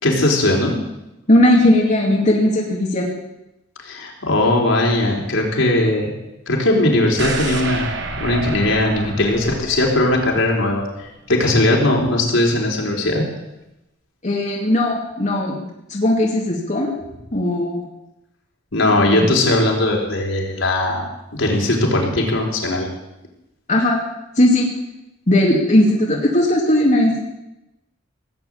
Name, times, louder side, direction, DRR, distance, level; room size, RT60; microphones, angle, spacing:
voice 1, 0.0-0.8 3.8-6.1 6.5-7.9 8.2-13.2 18.7-22.9, left 1 dB, 75° left, -1 dB, 4.0 m, -19 dB
voice 2, 1.3-3.1 14.2-16.9 17.3-17.9 19.1-19.3 23.7-24.0 24.4-24.7 25.3-27.2, left 1 dB, 40° left, -2 dB, 2.4 m, -17 dB
sound 1, 7.2-11.2 11.5-11.6, right 3 dB, 65° right, 2.4 m, -29 dB
18.0 x 8.0 x 9.0 m, 0.92 s
head